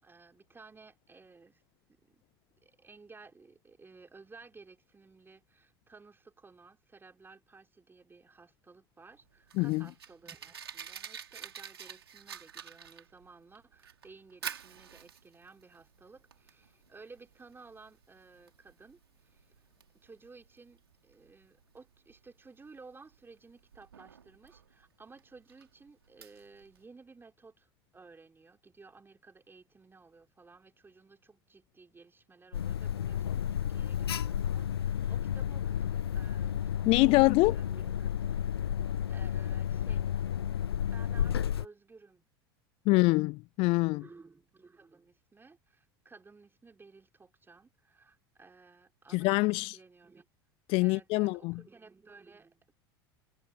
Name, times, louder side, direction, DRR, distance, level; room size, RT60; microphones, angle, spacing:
voice 1, 0.0-1.6 1.9-2.2 2.6-19.5 19.9-36.6 37.1-38.4 39.1-40.0 40.9-42.2 44.0-50.2 50.8-52.7, right 4 dB, 15° right, 4.8 m, -56 dB
Fire, 9.1-26.8, right 8 dB, 85° right, 4.8 m, -49 dB
Alarm, 32.5-41.6, left 9 dB, 85° left, 0.7 m, -32 dB
voice 2, 36.9-37.5 42.9-44.0 49.1-49.8 50.7-51.6, left 24 dB, 50° left, 0.3 m, -25 dB
hypercardioid pair, 80°, 13 cm